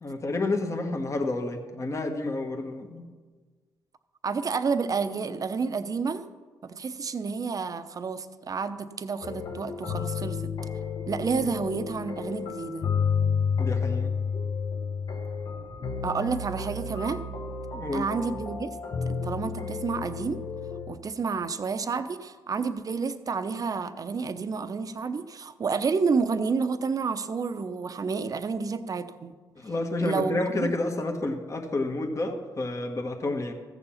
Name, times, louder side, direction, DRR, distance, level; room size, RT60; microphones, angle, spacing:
voice 1, 0.0-3.0 11.4-11.5 13.6-14.2 17.7-18.1 29.5-33.5, left 2 dB, 35° left, 3 dB, 1.5 m, -30 dB
voice 2, 4.2-6.2 6.6-10.5 11.1-12.9 16.0-17.2 17.9-18.7 19.1-20.4 20.9-29.3 30.0-30.7, right 5 dB, 45° right, 10 dB, 0.8 m, -30 dB
sound 1, 9.2-20.9, left 5 dB, 60° left, 1.4 m, -31 dB
14.5 x 7.0 x 5.7 m, 1.4 s
supercardioid pair, 65°, 9 cm